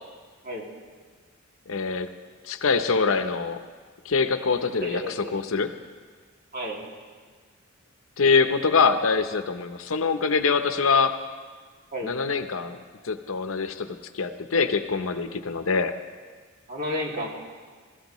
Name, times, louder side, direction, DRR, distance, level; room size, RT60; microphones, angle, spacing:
voice 1, 1.7-2.1 2.5-3.6 4.0-5.7 8.2-11.2 12.0-12.8 13.0-15.9, left 5 dB, 75° left, 9 dB, 0.7 m, -24 dB
voice 2, 4.8-5.4 6.5-6.8 11.9-12.1 16.7-17.3, equal, 45° right, -1 dB, 2.3 m, -31 dB
20.5 x 14.0 x 3.1 m, 1.5 s
head